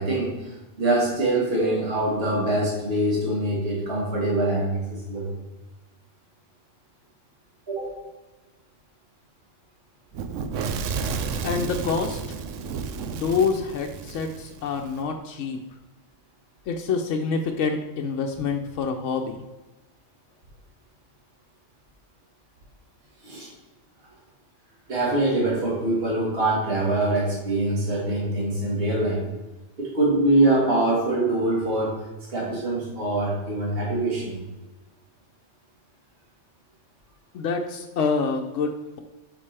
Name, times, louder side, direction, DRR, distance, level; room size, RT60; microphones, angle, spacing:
voice 1, 0.0-5.3 7.7-8.0 23.2-23.5 24.9-29.2 29.8-32.0 32.3-34.4, right 2 dB, 50° right, -4 dB, 2.0 m, -24 dB
Fire / Explosion, 10.1-15.0, right 5 dB, 85° right, 1.0 m, -32 dB
voice 2, 11.4-12.2 13.1-15.6 16.7-19.4 37.3-39.0, left 5 dB, 75° left, 2 dB, 1.0 m, -26 dB
8.6 x 5.4 x 3.3 m, 1.1 s
omnidirectional pair, 1.3 m